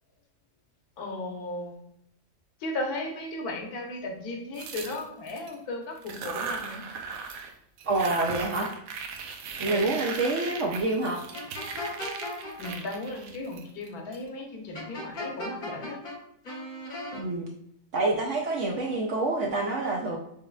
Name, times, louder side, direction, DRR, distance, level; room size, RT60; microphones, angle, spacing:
voice 1, 1.0-1.8 2.6-6.8 7.3-7.4 9.7-10.0 12.6-16.0, left 2 dB, 75° left, 2 dB, 1.3 m, -36 dB
sound 1, 4.5-5.5 6.0-7.5 7.8-14.2, right 5 dB, 85° right, 1.2 m, -38 dB
voice 2, 7.9-8.7 9.6-11.2 17.1-17.5 17.9-20.2, right 2 dB, 65° right, 0 dB, 0.7 m, -27 dB
sound 2, 11.3-12.7 14.7-16.2 16.4-17.2, left 1 dB, 40° left, 0.8 m, -36 dB
6.3 x 3.3 x 2.3 m, 0.74 s
omnidirectional pair, 1.7 m